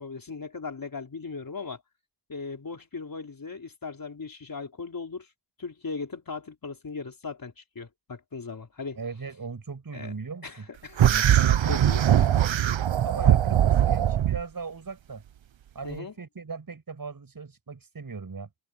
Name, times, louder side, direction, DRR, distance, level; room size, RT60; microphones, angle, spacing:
voice 1, 0.0-1.8 2.3-5.3 5.6-9.0 9.9-10.1 10.4-11.0 11.7-12.3 15.8-16.1, left 4 dB, 45° left, 4.5 m, -38 dB
voice 2, 9.0-10.7 11.1-12.5 13.0-15.2 15.7-18.5, right 4 dB, 45° right, 7.2 m, -38 dB
sound 1, 11.0-14.4, right 11 dB, 75° right, 1.1 m, -21 dB
wide cardioid pair, 95°, 47 cm